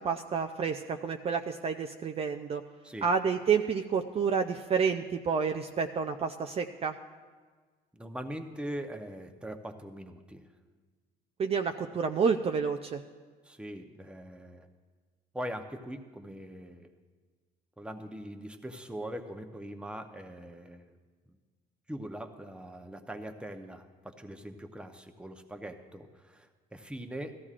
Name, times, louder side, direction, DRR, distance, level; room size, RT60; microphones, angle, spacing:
voice 1, 0.0-2.6 3.0-6.9 11.4-13.0, right 6 dB, 35° right, 5 dB, 0.5 m, -29 dB
voice 2, 7.9-10.5 13.4-14.7 15.3-16.9 17.8-20.9 21.9-27.4, equal, 5° right, 6 dB, 0.8 m, -41 dB
16.5 x 14.0 x 2.5 m, 1.4 s
cardioid pair, 110°, 17 cm